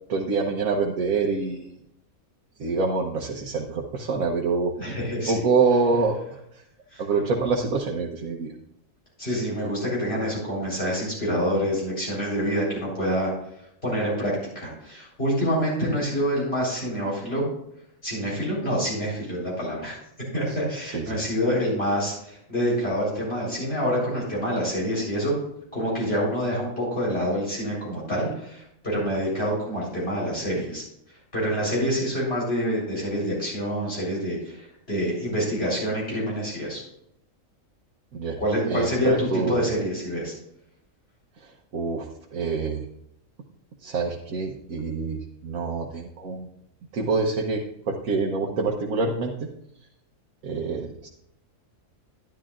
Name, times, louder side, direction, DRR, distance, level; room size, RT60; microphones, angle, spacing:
voice 1, 0.1-1.7 2.6-4.7 5.3-6.2 7.0-8.5 20.9-21.1 38.1-38.4 38.7-39.6 41.7-42.1 42.3-42.8 43.8-46.5 46.9-49.3 50.4-51.1, right 4 dB, 90° right, 0 dB, 1.4 m, -26 dB
voice 2, 4.8-5.5 6.9-7.0 9.2-13.3 13.8-17.4 18.0-20.0 20.3-25.4 25.7-30.8 31.3-36.8 38.4-40.3, equal, 45° left, -6 dB, 4.5 m, -27 dB
11.5 x 11.0 x 2.5 m, 0.76 s
omnidirectional pair, 1.4 m